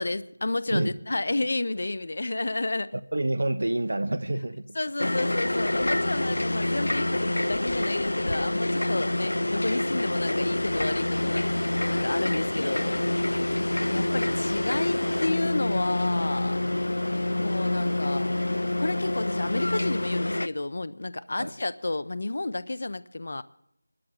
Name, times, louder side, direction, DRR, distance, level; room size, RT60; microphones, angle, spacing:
voice 1, 0.0-3.0 4.8-11.5 11.9-13.5 13.9-16.6 17.4-18.3 18.8-23.4, left 2 dB, 35° left, 16 dB, 0.5 m, -31 dB
voice 2, 3.1-4.7 17.3-17.5 21.4-21.5, right 1 dB, 60° right, 14 dB, 0.9 m, -28 dB
sound 1, 5.0-20.5, left 1 dB, 85° left, 0.5 m, -27 dB
sound 2, 11.4-20.1, right 1 dB, 25° right, 1.2 m, -47 dB
25.0 x 12.5 x 3.6 m, 0.75 s
figure-of-eight pair, 180°, 0 cm